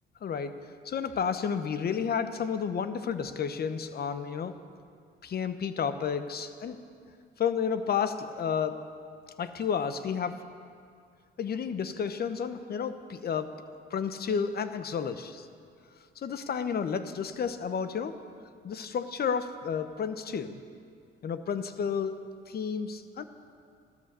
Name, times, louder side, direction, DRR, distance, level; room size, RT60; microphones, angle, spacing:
voice 1, 0.2-0.6 0.8-4.5 5.2-6.8 7.4-8.8 9.4-10.4 11.4-13.6 13.9-15.5 16.2-18.2 18.6-20.6 21.2-22.2 22.5-23.2, left 7 dB, 50° left, 11 dB, 1.0 m, -31 dB
16.0 x 13.0 x 6.8 m, 2.3 s
cardioid pair, 90°, 20 cm